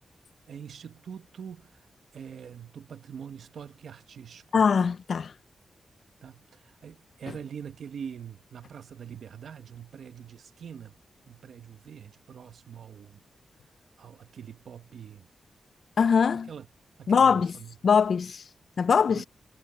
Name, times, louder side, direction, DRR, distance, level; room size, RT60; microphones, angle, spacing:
voice 1, 0.5-1.9 2.1-4.7 6.2-11.0 11.3-13.2 14.0-15.3 16.5-16.7 17.0-17.8 19.1-19.3, right 7 dB, 75° right, 1.0 m, -44 dB
voice 2, 4.5-5.3 16.0-16.5 17.1-17.5 17.8-18.4 18.8-19.2, left 6 dB, 55° left, 0.3 m, -22 dB
wide cardioid pair, 155°, 0 cm